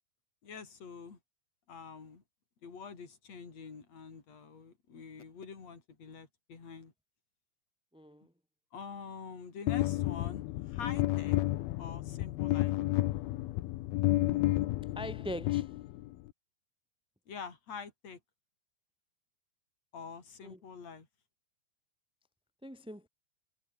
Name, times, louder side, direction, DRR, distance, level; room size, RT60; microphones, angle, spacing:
voice 1, 0.4-1.2 1.7-2.2 2.6-6.9 8.7-11.4 11.8-12.8 17.3-18.2 19.9-21.1, left 5 dB, 40° left, 5.6 m, -46 dB
voice 2, 7.9-8.3 14.9-15.8 20.4-20.6 22.6-23.1, left 1 dB, 5° right, 0.8 m, -42 dB
sound 1, 9.7-16.3, left 16 dB, 75° left, 2.5 m, -31 dB
omnidirectional pair, 5.0 m